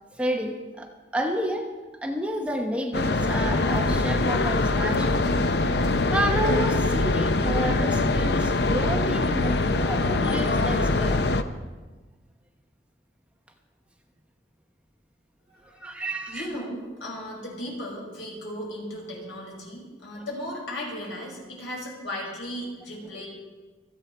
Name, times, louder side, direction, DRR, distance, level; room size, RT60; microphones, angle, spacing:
voice 1, 0.1-1.7 2.0-5.4 6.1-11.3 15.8-16.4 20.2-20.3, right 1 dB, 5° right, 2 dB, 1.0 m, -30 dB
sound 1, 2.9-11.4, left 2 dB, 60° left, 0.7 m, -23 dB
voice 2, 15.5-16.0 16.3-23.3, equal, 90° left, -2 dB, 5.5 m, -36 dB
26.0 x 9.0 x 4.4 m, 1.3 s
head